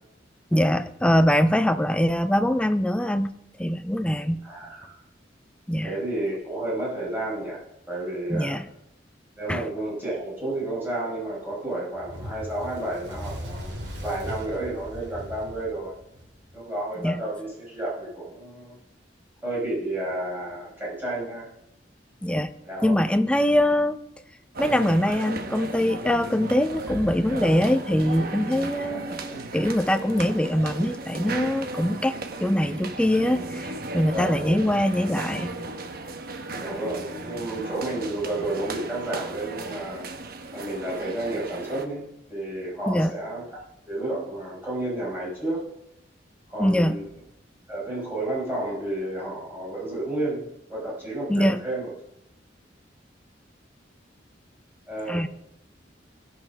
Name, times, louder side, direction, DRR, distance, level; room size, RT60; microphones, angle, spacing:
voice 1, 0.5-3.3 3.6-4.4 5.7-5.9 8.3-8.6 9.5-9.6 17.0-17.2 22.2-22.5 22.8-24.0 24.6-35.5 42.9-43.1 46.6-47.0 51.3-51.6 55.1-55.3, equal, 5° left, 8 dB, 0.5 m, -23 dB
voice 2, 4.4-5.0 5.8-7.6 7.9-8.5 9.4-15.9 16.5-18.8 19.4-21.5 22.6-23.0 28.8-29.1 34.1-34.6 36.6-40.0 40.5-43.4 43.9-45.7 46.5-47.1 47.7-51.9 54.9-55.2, right 1 dB, 10° right, -7 dB, 4.8 m, -31 dB
Fire, 12.0-16.5, equal, 80° right, 2.6 m, -38 dB
sound 1, 24.5-41.9, right 2 dB, 55° right, 0.9 m, -35 dB
17.0 x 5.9 x 5.5 m, 0.84 s
head